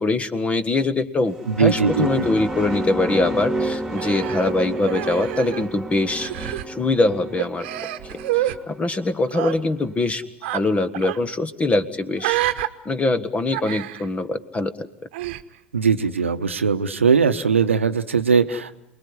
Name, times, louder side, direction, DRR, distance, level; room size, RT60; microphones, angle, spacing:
voice 1, 0.0-7.7 8.3-10.2 10.5-12.4 12.8-14.9, left 2 dB, 20° left, 13 dB, 1.6 m, -23 dB
sound 1, 1.3-9.9, right 1 dB, 5° right, 2.7 m, -31 dB
voice 2, 1.5-2.2 15.7-18.8, right 6 dB, 85° right, 10 dB, 1.0 m, -20 dB
Human voice, 4.0-5.8 6.1-6.7 7.4-8.6 9.3-9.6 10.4-10.6 10.9-11.2 12.2-12.7 13.5-14.1 15.1-15.4, right 15 dB, 65° right, 1.2 m, -27 dB
28.5 x 20.5 x 9.8 m, 0.81 s
hypercardioid pair, 85°, 7 cm